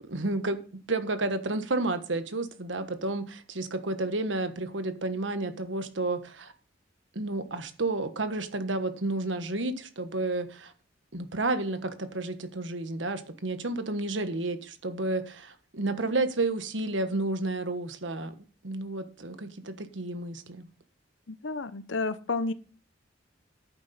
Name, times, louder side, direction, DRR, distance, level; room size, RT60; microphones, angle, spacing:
voice 1, 0.0-0.6 0.9-6.5 7.1-10.7 11.1-18.3 18.6-20.7, right 2 dB, 75° right, 10 dB, 1.4 m, -31 dB
voice 2, 21.3-22.5, left 3 dB, 80° left, 13 dB, 0.9 m, -31 dB
10.5 x 9.2 x 4.3 m, 0.37 s
head